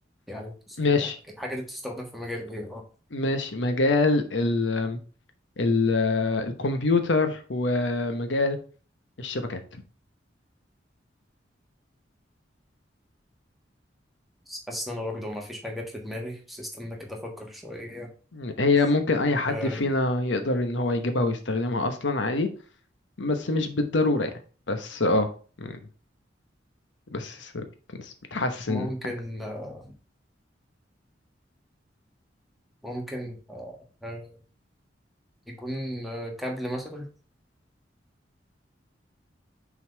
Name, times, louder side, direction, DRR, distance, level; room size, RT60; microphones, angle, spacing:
voice 1, 0.3-1.1 1.4-2.8 14.5-18.1 19.5-19.9 28.7-29.9 32.8-34.3 35.5-37.1, equal, ahead, 1.3 m, -35 dB
voice 2, 0.8-1.2 3.1-5.0 5.6-8.6 9.2-9.8 18.3-22.5 23.2-24.3 24.7-25.3 25.6-25.8 27.1-27.6 28.0-28.9, left 3 dB, 80° left, 0.9 m, -25 dB
5.9 x 3.9 x 4.5 m
head